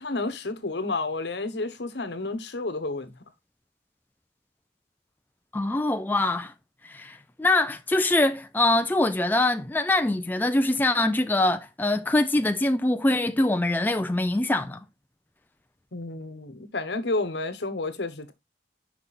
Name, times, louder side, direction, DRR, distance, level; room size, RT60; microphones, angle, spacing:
voice 1, 0.0-3.1 15.9-18.3, left 2 dB, 80° left, 1.1 m, -30 dB
voice 2, 5.5-6.5 6.8-14.8, left 2 dB, 10° left, 0.3 m, -24 dB
5.9 x 5.3 x 4.1 m
head